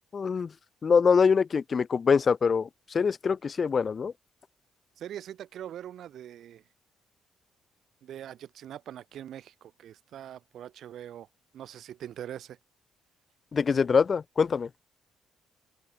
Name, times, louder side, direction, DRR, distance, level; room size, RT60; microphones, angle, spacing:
voice 1, 0.1-0.5 0.8-4.1 13.5-14.7, left 5 dB, 40° left, 0.4 m, -24 dB
voice 2, 5.0-6.6 8.0-11.3 11.5-12.6, right 11 dB, 70° right, 2.4 m, -42 dB
cardioid pair, 90°, 0 cm